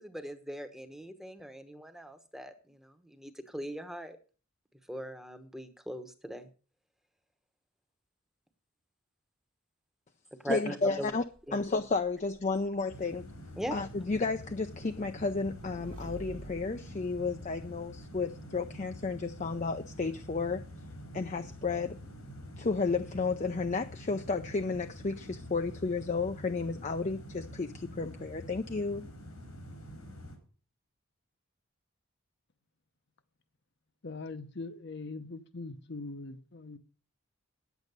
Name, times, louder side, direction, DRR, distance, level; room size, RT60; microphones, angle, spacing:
voice 1, 0.0-4.2 4.9-6.5 10.4-11.1 11.5-11.6 13.6-13.8, right 1 dB, ahead, 0.9 m, -40 dB
voice 2, 10.4-11.2 11.5-13.2 13.7-20.6 21.1-22.0 22.6-29.0, left 4 dB, 35° left, 0.5 m, -32 dB
Motorcycle / Engine, 11.2-18.1, right 1 dB, 70° right, 1.2 m, -52 dB
sound 1, 12.9-30.4, equal, 90° left, 4.0 m, -47 dB
voice 3, 34.0-36.8, left 3 dB, 50° left, 0.8 m, -41 dB
9.5 x 8.2 x 6.7 m
head